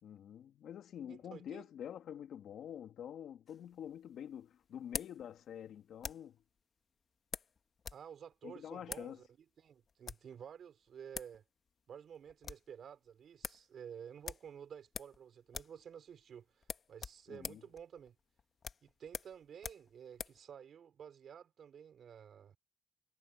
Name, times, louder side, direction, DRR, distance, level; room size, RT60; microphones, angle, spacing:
voice 1, 0.0-6.4 8.4-9.2 17.3-17.6, left 9 dB, 70° left, 2.0 m, -47 dB
voice 2, 1.1-1.6 7.9-9.3 9.6-11.4 11.9-18.1 18.8-22.6, right 8 dB, 60° right, 4.4 m, -52 dB
sound 1, 3.5-6.4 7.3-8.1 8.3-8.4 8.8-9.1 9.9-10.3 10.9-11.0 11.1-11.4 11.7-11.8 12.1-12.7 13.1-13.2 13.4-13.7 14.2-15.2 15.5-15.8 16.1-16.2 16.6-20.4, left 6 dB, 45° left, 1.6 m, -45 dB
cardioid pair, 90°, 0 cm